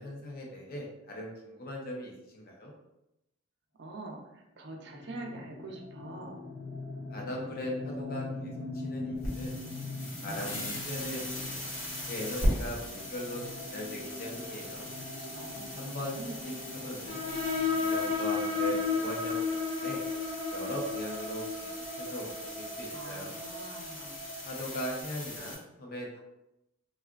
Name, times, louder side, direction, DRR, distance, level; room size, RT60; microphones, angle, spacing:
voice 1, 0.0-2.7 7.1-9.5 10.2-11.8 12.1-14.8 15.7-17.2 17.7-19.4 19.7-20.0 20.5-21.7 22.0-23.3 24.4-26.2, equal, 45° left, -1 dB, 0.6 m, -39 dB
voice 2, 3.8-6.4 10.2-10.8 15.3-16.4 22.9-24.4, right 2 dB, 55° right, 1 dB, 0.5 m, -45 dB
sound 1, 4.7-20.3, left 2 dB, 5° left, 0.7 m, -43 dB
sound 2, 9.1-25.5, left 1 dB, 75° left, 1.0 m, -39 dB
sound 3, 17.1-24.4, left 4 dB, 30° left, 1.0 m, -33 dB
3.7 x 2.3 x 2.3 m, 0.89 s
head